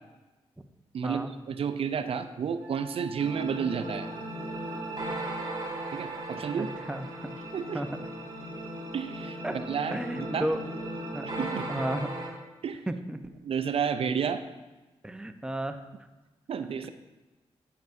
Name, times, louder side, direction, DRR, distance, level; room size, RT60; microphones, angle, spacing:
voice 1, 0.9-4.1 5.9-6.7 7.5-7.8 8.9-10.0 10.3-10.5 11.4-11.7 12.6-12.8 13.4-14.4 16.5-16.9, right 7 dB, 65° right, 10 dB, 0.4 m, -31 dB
Wind instrument woodwind instrument, 2.6-7.2, right 5 dB, 30° right, 2.8 m, -45 dB
sound 1, 3.2-12.3, right 1 dB, 45° right, 2.7 m, -37 dB
voice 2, 6.6-7.3 7.7-7.9 9.4-9.6 9.9-10.6 11.1-11.3 11.7-12.1 12.9-13.2 15.0-15.8, right 1 dB, 10° right, 7 dB, 0.6 m, -33 dB
9.0 x 7.9 x 2.6 m, 1.1 s
cardioid pair, 60°, 11 cm